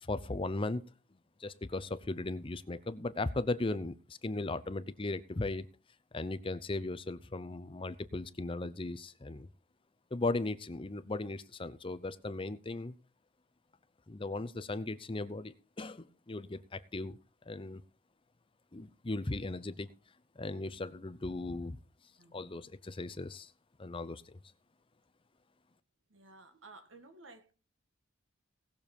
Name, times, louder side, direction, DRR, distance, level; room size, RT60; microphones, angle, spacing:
voice 1, 0.0-0.8 1.4-5.7 6.1-9.5 10.1-12.9 14.1-17.2 17.5-17.8 18.7-19.9 20.4-21.8 22.3-23.5 23.8-24.3, left 2 dB, 25° left, 0.6 m, -37 dB
voice 2, 26.1-27.5, right 3 dB, 75° right, 1.8 m, -55 dB
18.5 x 6.9 x 4.4 m
head